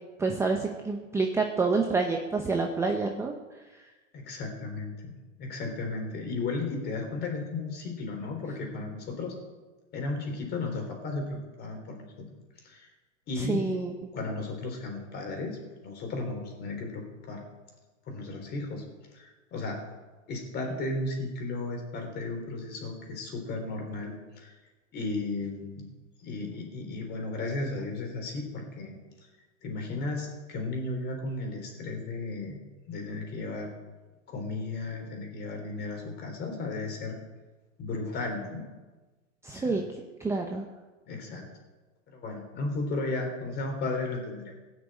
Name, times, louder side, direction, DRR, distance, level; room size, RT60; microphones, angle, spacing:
voice 1, 0.2-3.3 13.4-13.9 39.4-39.8 40.2-40.6, right 4 dB, 5° right, 2 dB, 0.8 m, -28 dB
voice 2, 4.1-9.4 9.9-12.3 12.6-12.9 13.3-13.8 14.1-15.6 15.8-17.4 18.1-18.9 19.1-19.8 20.3-24.5 24.9-25.9 26.2-29.0 29.6-32.6 32.9-33.7 34.3-37.2 37.8-38.6 39.5-39.8 41.1-41.5 42.1-44.5, left 3 dB, 25° left, 3 dB, 3.6 m, -34 dB
16.5 x 6.5 x 8.3 m, 1.2 s
hypercardioid pair, 140°, 38 cm